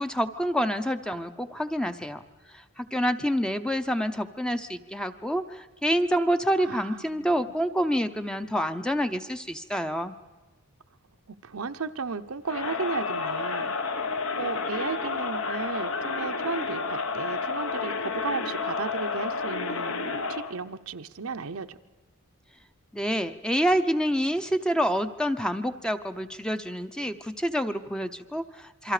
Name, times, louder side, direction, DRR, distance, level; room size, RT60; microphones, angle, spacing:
voice 1, 0.0-2.2 2.5-10.2 22.9-28.9, equal, 5° left, 9 dB, 0.7 m, -27 dB
voice 2, 6.6-7.5 11.3-21.8, right 4 dB, 70° right, 9 dB, 0.8 m, -35 dB
Crowd, 12.5-20.6, left 4 dB, 60° left, 1.2 m, -30 dB
28.0 x 24.0 x 5.0 m, 1.2 s
head